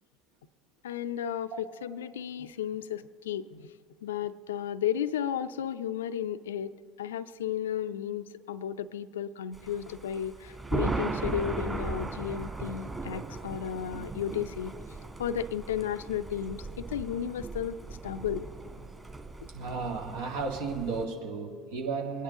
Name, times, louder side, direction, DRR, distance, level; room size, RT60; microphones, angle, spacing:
voice 1, 0.8-3.7 4.0-6.7 7.0-14.7 15.2-17.8 18.0-18.5, left 9 dB, 75° left, 13 dB, 0.5 m, -33 dB
Thunder, 9.5-21.1, right 3 dB, 15° right, 2.1 m, -37 dB
voice 2, 19.5-22.2, right 4 dB, 65° right, 1 dB, 2.0 m, -34 dB
23.5 x 10.0 x 3.7 m, 2.1 s
figure-of-eight pair, 65°, 0 cm